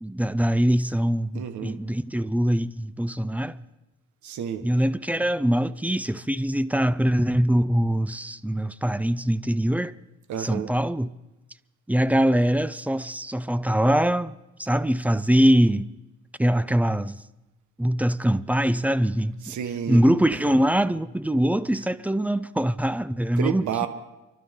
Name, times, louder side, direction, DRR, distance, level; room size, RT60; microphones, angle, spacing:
voice 1, 0.0-3.6 4.6-10.0 10.4-11.1 11.9-15.9 16.4-17.2 17.8-19.6 19.9-23.9, equal, 5° right, 0.5 m, -23 dB
voice 2, 1.3-1.8 4.2-4.7 10.3-10.7 19.4-20.6 21.8-21.9 23.4-23.9, right 9 dB, 75° right, 1.3 m, -31 dB
27.0 x 12.5 x 3.7 m
cardioid pair, 90°, 30 cm